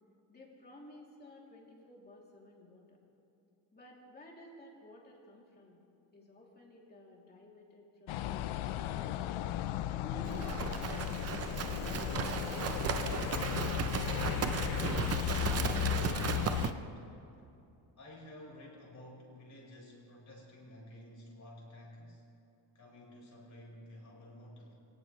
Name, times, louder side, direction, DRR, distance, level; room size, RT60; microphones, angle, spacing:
voice 1, 0.3-3.0 3.7-5.8 6.1-9.4 9.9-11.2 11.7-12.1 12.4-13.9, left 1 dB, 20° left, -3 dB, 3.0 m, -53 dB
sound 1, 8.1-16.7, left 12 dB, 80° left, 0.7 m, -35 dB
Livestock farm animals working animals, 10.2-16.7, right 7 dB, 30° right, 0.6 m, -36 dB
voice 2, 15.4-17.1 18.0-22.2 22.7-24.7, left 1 dB, 35° left, -3 dB, 4.9 m, -52 dB
22.5 x 18.5 x 3.2 m, 2.8 s
cardioid pair, 155°, 48 cm